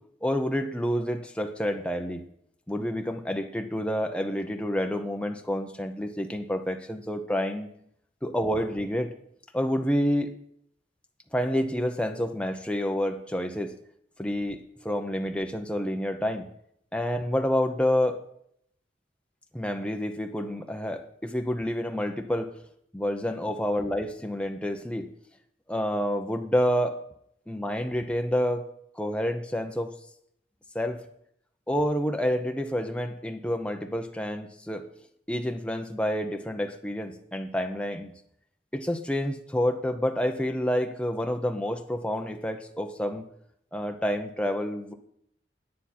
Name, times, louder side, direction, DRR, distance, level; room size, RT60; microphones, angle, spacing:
voice 1, 0.2-2.2 2.7-7.7 8.2-9.1 9.5-10.3 11.3-13.7 14.2-16.5 16.9-18.2 19.5-22.5 22.9-25.1 25.7-26.9 27.5-28.7 28.9-29.9 30.7-31.0 31.7-34.8 35.3-38.1 38.7-43.2 43.7-44.9, equal, 5° left, 5 dB, 0.7 m, -28 dB
9.7 x 9.6 x 4.3 m, 0.71 s
head